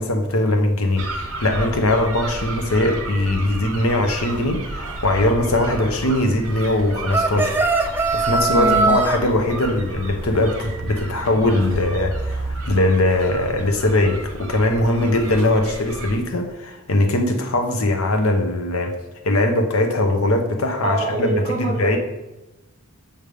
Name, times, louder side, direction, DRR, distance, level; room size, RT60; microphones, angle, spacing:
voice 1, 0.0-7.6 8.1-18.9 19.2-22.0, left 1 dB, 70° left, 4 dB, 0.8 m, -20 dB
sound 1, 1.0-16.2, right 2 dB, 65° right, 1.3 m, -32 dB
sound 2, 7.1-9.2, right 3 dB, 10° right, 0.3 m, -20 dB
voice 2, 8.5-8.9 20.8-22.0, right 1 dB, 30° right, -1 dB, 1.3 m, -25 dB
7.1 x 3.3 x 5.4 m, 1.0 s
head